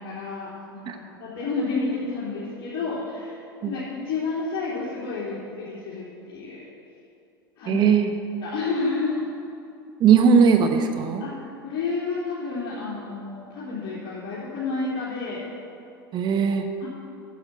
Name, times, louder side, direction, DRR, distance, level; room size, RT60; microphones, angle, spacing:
voice 1, 0.0-6.6 7.6-7.9 8.4-9.2 11.2-15.4 16.8-16.9, left 4 dB, 45° left, -9 dB, 3.3 m, -30 dB
voice 2, 7.7-8.1 10.0-11.2 16.1-16.6, right 6 dB, 40° right, 6 dB, 1.0 m, -18 dB
9.9 x 7.1 x 8.7 m, 2.6 s
hypercardioid pair, 85°, 12 cm